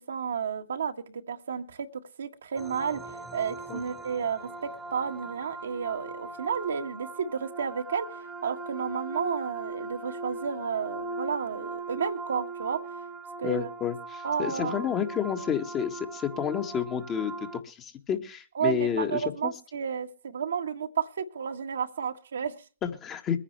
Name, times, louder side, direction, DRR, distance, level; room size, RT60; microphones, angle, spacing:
voice 1, 0.1-0.9 1.3-1.9 2.2-12.8 13.4-13.7 14.2-14.8 18.6-22.6, right 7 dB, 75° right, 5 dB, 1.7 m, -32 dB
sound 1, 2.6-17.6, right 3 dB, 10° right, 1.4 m, -39 dB
voice 2, 13.4-19.5 22.8-23.4, left 8 dB, 25° left, 6 dB, 1.8 m, -30 dB
23.0 x 10.0 x 3.3 m, 0.35 s
hypercardioid pair, 120°, 0 cm